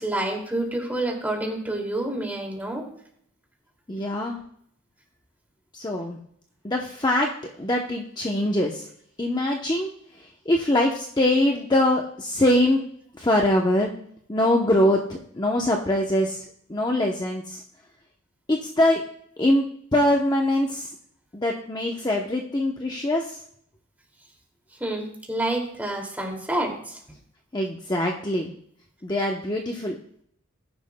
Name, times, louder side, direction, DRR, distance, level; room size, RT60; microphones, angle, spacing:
voice 1, 0.0-2.9 24.8-27.0, right 1 dB, 10° right, 1 dB, 2.4 m, -28 dB
voice 2, 3.9-4.4 5.7-6.2 6.6-8.9 9.2-9.9 10.5-12.8 13.1-13.9 14.3-16.4 16.7-17.6 18.5-19.0 19.4-19.7 19.9-20.9 21.3-23.4 27.5-28.5 29.0-29.9, left 1 dB, 20° left, 0 dB, 0.8 m, -23 dB
19.5 x 10.5 x 2.2 m, 0.68 s
head